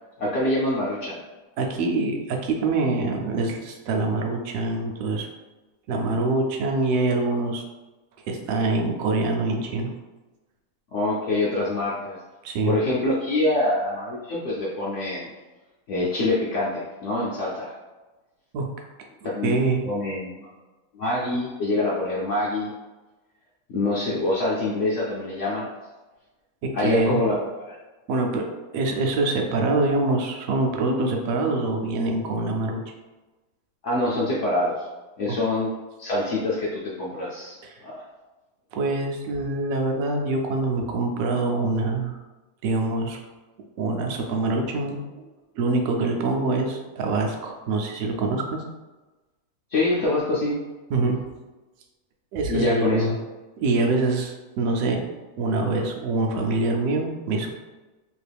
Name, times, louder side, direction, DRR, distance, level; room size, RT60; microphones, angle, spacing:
voice 1, 0.2-1.2 10.9-12.2 12.7-15.3 15.9-17.7 19.2-20.5 20.9-22.7 23.7-25.7 26.7-27.8 33.8-34.9 35.2-35.7 36.0-37.6 37.8-38.0 49.7-50.6 52.5-53.1, left 2 dB, 65° left, -6 dB, 0.8 m, -25 dB
voice 2, 1.6-5.3 5.9-7.6 8.3-9.9 12.4-12.7 18.5-18.7 19.4-19.8 26.6-27.3 28.1-32.8 37.6-37.8 38.7-42.1 42.6-43.2 43.8-45.0 45.6-48.6 50.9-51.2 52.3-53.2 53.6-55.1 55.4-57.5, right 2 dB, 70° right, 2 dB, 1.0 m, -25 dB
3.0 x 2.5 x 3.3 m, 1.1 s
omnidirectional pair, 1.6 m